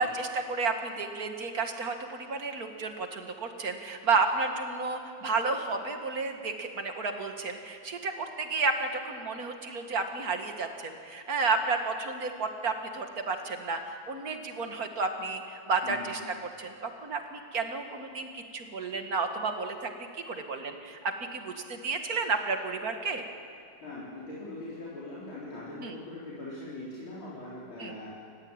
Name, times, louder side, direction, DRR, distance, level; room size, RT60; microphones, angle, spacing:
voice 1, 0.0-16.2 16.6-19.9 20.3-21.0 21.3-23.3 25.8-25.9 27.8-27.9, right 4 dB, 45° right, 5 dB, 2.0 m, -31 dB
voice 2, 15.8-16.1 23.8-28.1, left 2 dB, 70° left, -9 dB, 5.0 m, -41 dB
30.0 x 15.0 x 8.8 m, 2.4 s
omnidirectional pair, 2.3 m